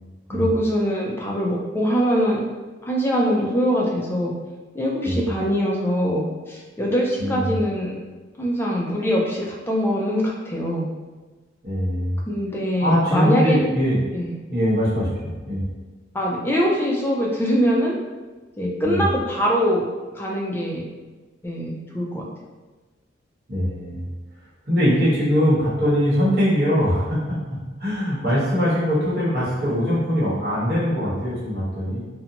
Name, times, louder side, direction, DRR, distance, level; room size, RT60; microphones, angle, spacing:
voice 1, 0.3-2.4 2.8-4.3 4.7-8.0 8.4-10.9 12.3-13.6 14.1-14.3 16.1-17.9 18.6-19.9 20.1-20.8 21.4-22.2, equal, 10° left, -3 dB, 0.4 m, -23 dB
voice 2, 7.2-7.6 11.6-12.2 12.8-14.0 14.5-15.6 18.8-19.1 23.5-24.0 24.7-27.4 27.8-32.0, equal, 55° right, -8 dB, 1.0 m, -22 dB
2.5 x 2.1 x 2.8 m, 1.3 s
head